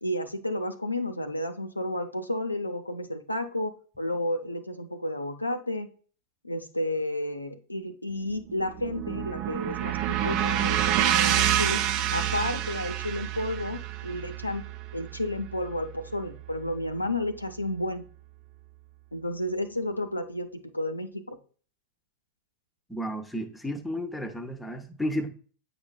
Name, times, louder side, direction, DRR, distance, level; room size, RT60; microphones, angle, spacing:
voice 1, 0.0-5.9 6.4-11.8 12.1-14.6 14.9-18.0 19.1-21.4, left 1 dB, 85° left, 0.5 m, -32 dB
sound 1, 8.3-16.6, right 11 dB, 40° right, 0.4 m, -28 dB
voice 2, 22.9-25.3, equal, 5° left, 0.8 m, -32 dB
8.6 x 4.9 x 2.3 m
figure-of-eight pair, 90°, 0 cm